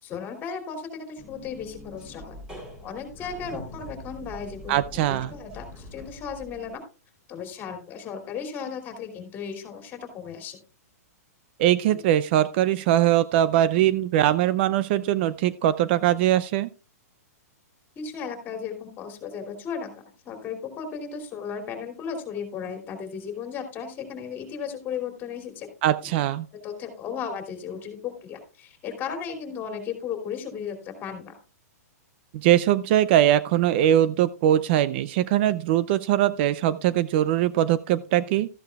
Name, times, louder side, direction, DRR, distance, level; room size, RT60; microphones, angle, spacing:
voice 1, 0.0-2.4 2.8-6.8 7.3-10.6 11.9-12.0 18.0-25.7 26.0-26.1 26.5-31.4, left 6 dB, 20° left, 5 dB, 2.9 m, -35 dB
sound 1, 1.2-6.7, left 1 dB, 10° right, 3.6 m, -43 dB
voice 2, 4.7-5.3 11.6-16.7 25.8-26.5 32.3-38.5, right 12 dB, 40° right, 17 dB, 0.4 m, -21 dB
13.5 x 11.0 x 2.3 m, 0.33 s
hypercardioid pair, 145°, 9 cm